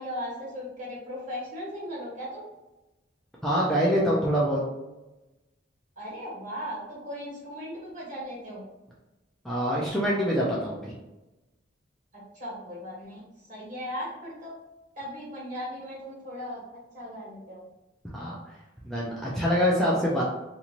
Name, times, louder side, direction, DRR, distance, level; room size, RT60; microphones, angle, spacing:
voice 1, 0.0-2.4 6.0-8.6 12.1-13.2 13.5-14.5 15.0-16.6 16.9-17.6, equal, 45° right, -7 dB, 1.4 m, -37 dB
voice 2, 3.4-4.6 9.4-10.9 18.1-18.4 18.8-20.2, equal, ahead, -6 dB, 0.4 m, -25 dB
2.9 x 2.7 x 2.5 m, 1.0 s
head